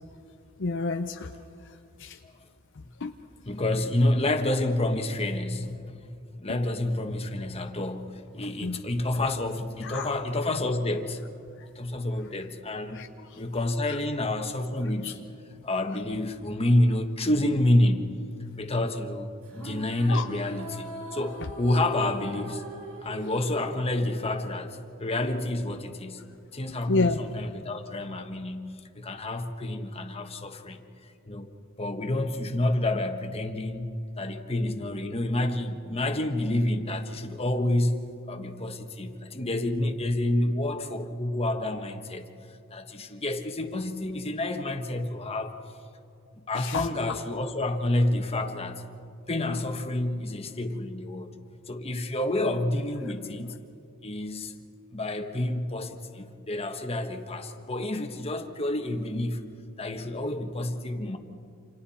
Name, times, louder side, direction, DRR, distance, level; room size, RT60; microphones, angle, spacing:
voice 1, 0.6-1.3 2.0-2.2 3.0-3.1 6.5-6.6 8.6-8.8 9.8-10.1 12.9-13.4 13.9-14.0 15.0-15.1 20.1-20.3 26.9-27.2 46.5-46.9, left 3 dB, 55° left, 6 dB, 0.7 m, -29 dB
voice 2, 3.4-11.2 11.7-13.0 13.3-15.2 15.6-18.2 18.6-19.3 19.6-22.6 23.0-26.2 26.5-30.8 31.3-31.5 31.8-33.9 34.2-42.3 42.7-45.6 46.5-48.8 49.3-51.3 51.7-53.6 54.0-54.5 54.9-59.5 59.8-61.2, left 1 dB, 25° left, 6 dB, 1.4 m, -28 dB
sound 1, 19.4-24.9, right 2 dB, 75° right, 7.2 m, -41 dB
29.0 x 27.5 x 4.3 m, 2.5 s
head